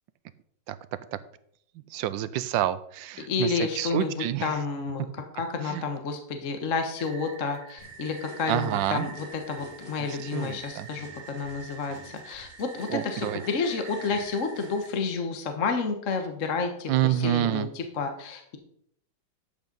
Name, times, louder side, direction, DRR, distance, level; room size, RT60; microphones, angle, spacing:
voice 1, 1.9-4.5 5.7-5.8 8.5-9.1 10.0-10.9 12.9-13.4 16.9-17.7, right 12 dB, 75° right, 15 dB, 1.2 m, -28 dB
voice 2, 3.2-18.6, left 4 dB, 45° left, 5 dB, 1.3 m, -30 dB
sound 1, 7.0-14.9, right 6 dB, 55° right, 1.8 m, -46 dB
sound 2, 7.8-15.0, left 2 dB, 25° left, 1.8 m, -49 dB
12.0 x 8.3 x 3.9 m, 0.68 s
omnidirectional pair, 2.3 m